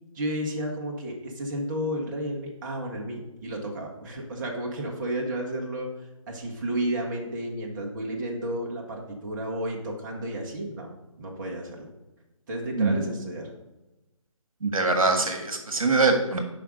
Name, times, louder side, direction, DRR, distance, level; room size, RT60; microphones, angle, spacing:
voice 1, 0.1-5.9 6.3-10.9 11.2-11.9 12.5-13.5, right 1 dB, 35° right, -1 dB, 1.4 m, -32 dB
voice 2, 14.6-16.4, right 3 dB, 75° right, 4 dB, 1.5 m, -23 dB
5.8 x 5.0 x 6.4 m, 1.0 s
figure-of-eight pair, 150°, 18 cm